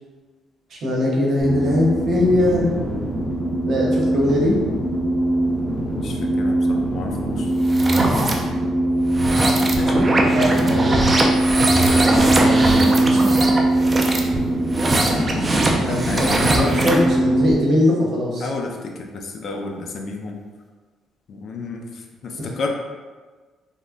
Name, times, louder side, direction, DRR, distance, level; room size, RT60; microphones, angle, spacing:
voice 1, 0.8-2.8 3.7-4.6 10.3-11.1 12.0-13.4 15.8-18.5 22.4-22.5, left 1 dB, 55° right, -3 dB, 0.8 m, -21 dB
sound 1, 1.4-17.5, right 1 dB, 25° left, 0.9 m, -21 dB
voice 2, 5.7-7.5 9.6-10.4 15.9-16.6 18.4-20.4 21.3-22.7, left 3 dB, 55° left, 2 dB, 0.4 m, -32 dB
sound 2, 7.6-8.3 9.0-17.1, right 2 dB, 25° right, 0.4 m, -21 dB
3.5 x 2.1 x 2.5 m, 1.4 s
cardioid pair, 120°, 0 cm